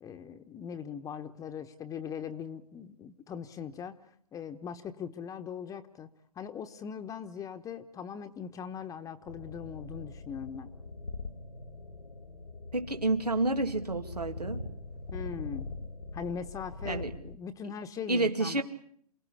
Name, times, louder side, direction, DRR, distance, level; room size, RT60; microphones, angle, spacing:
voice 1, 0.0-6.1 6.3-10.7 15.1-15.7 16.1-18.6, left 7 dB, 15° left, 8 dB, 1.1 m, -40 dB
sound 1, 9.2-17.4, left 3 dB, 90° left, 2.3 m, -42 dB
voice 2, 12.7-14.6 16.9-17.1 18.1-18.6, right 2 dB, 90° right, 6 dB, 2.4 m, -29 dB
28.5 x 18.5 x 8.6 m, 0.64 s
figure-of-eight pair, 120°, 20 cm